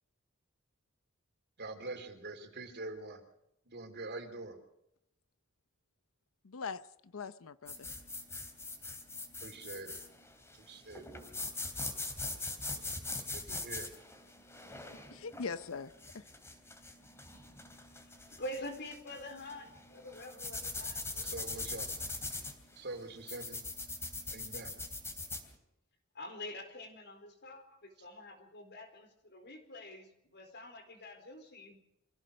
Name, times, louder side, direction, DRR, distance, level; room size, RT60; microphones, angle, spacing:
voice 1, 1.6-3.2 3.7-4.6 9.4-9.9 10.6-11.1 13.3-13.9 21.1-22.0 22.8-23.6 24.3-24.7, right 2 dB, 55° right, 3.5 m, -44 dB
voice 2, 6.4-7.7 15.1-16.2, left 5 dB, 70° left, 0.7 m, -41 dB
sound 1, 7.7-25.5, left 2 dB, 15° left, 3.2 m, -42 dB
voice 3, 17.9-21.5 26.1-31.8, left 1 dB, 55° left, 4.3 m, -46 dB
25.5 x 16.0 x 6.5 m
head